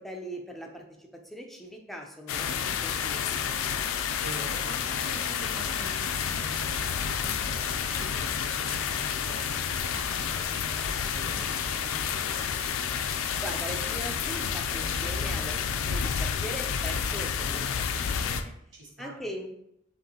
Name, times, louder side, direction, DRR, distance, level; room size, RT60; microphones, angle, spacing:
voice 1, 0.0-3.8 13.4-18.5 19.0-19.5, equal, ahead, 1 dB, 0.5 m, -41 dB
sound 1, 2.3-18.4, left 7 dB, 70° left, 0.4 m, -30 dB
voice 2, 4.2-12.5 18.7-19.2, right 2 dB, 60° right, -2 dB, 1.1 m, -45 dB
5.3 x 2.6 x 2.8 m, 0.74 s
head